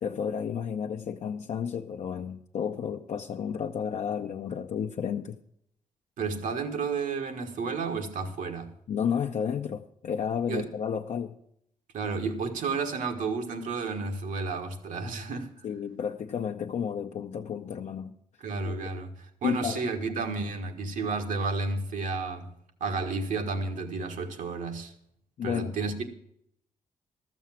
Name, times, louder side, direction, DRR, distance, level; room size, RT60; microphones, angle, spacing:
voice 1, 0.0-5.4 8.9-11.4 15.6-18.2 18.6-18.9 19.4-19.8 25.4-25.7, left 7 dB, 60° left, 0.7 m, -32 dB
voice 2, 6.2-8.7 10.5-10.7 11.9-15.5 18.4-19.1 19.4-22.5 22.8-24.9 25.4-26.0, right 4 dB, 75° right, 1.6 m, -31 dB
13.0 x 7.0 x 7.4 m
cardioid pair, 80°, 13 cm